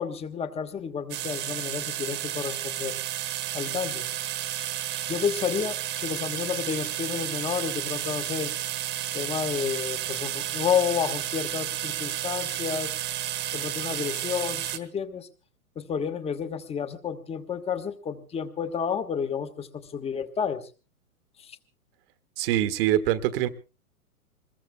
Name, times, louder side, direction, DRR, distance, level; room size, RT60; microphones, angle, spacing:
voice 1, 0.0-3.0 3.5-4.1 5.1-8.5 9.1-12.9 13.5-15.3 15.7-20.7 21.4-21.6, left 7 dB, 15° left, 11 dB, 1.2 m, -30 dB
sound 1, 1.1-14.8, right 12 dB, 25° right, 1.4 m, -32 dB
voice 2, 22.4-23.5, right 12 dB, 40° right, 12 dB, 1.4 m, -24 dB
26.5 x 21.5 x 2.2 m, 0.34 s
hypercardioid pair, 120°, 43 cm